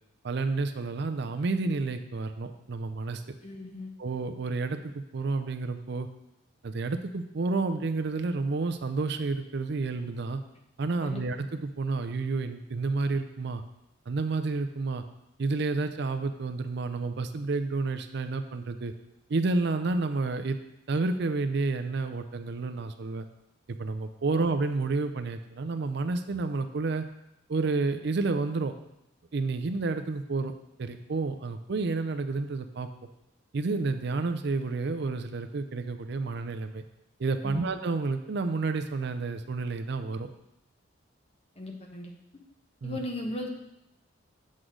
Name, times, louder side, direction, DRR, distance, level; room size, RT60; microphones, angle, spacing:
voice 1, 0.2-3.2 4.0-6.1 6.6-10.4 10.8-13.6 14.1-15.0 15.4-18.9 19.3-20.6 20.9-23.3 23.7-27.0 27.5-28.7 29.3-30.5 30.8-32.9 33.5-36.8 37.2-40.3 42.8-43.0, right 3 dB, 55° right, 8 dB, 0.5 m, -30 dB
voice 2, 3.4-3.9 11.0-11.2 24.3-24.5 37.4-37.7 41.6-42.1 42.8-43.5, left 1 dB, 30° left, 1 dB, 1.1 m, -37 dB
8.0 x 6.3 x 3.8 m, 0.86 s
head